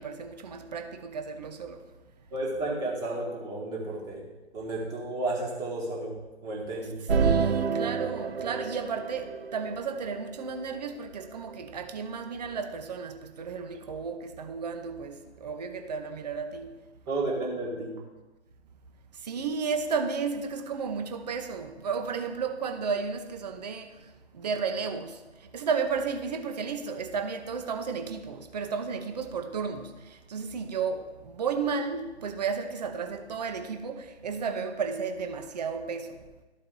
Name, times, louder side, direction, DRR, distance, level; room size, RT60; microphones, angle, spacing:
voice 1, 0.0-1.8 7.2-16.7 19.2-23.9 24.3-25.2 25.5-36.2, right 5 dB, 40° right, 0.8 m, -33 dB
voice 2, 2.3-4.2 4.5-6.1 6.4-7.0 17.1-17.9, right 2 dB, 10° right, 1.2 m, -32 dB
sound 1, 7.1-10.8 11.5-11.6, right 5 dB, 65° right, 0.5 m, -29 dB
13.0 x 4.3 x 3.8 m
figure-of-eight pair, 135°, 33 cm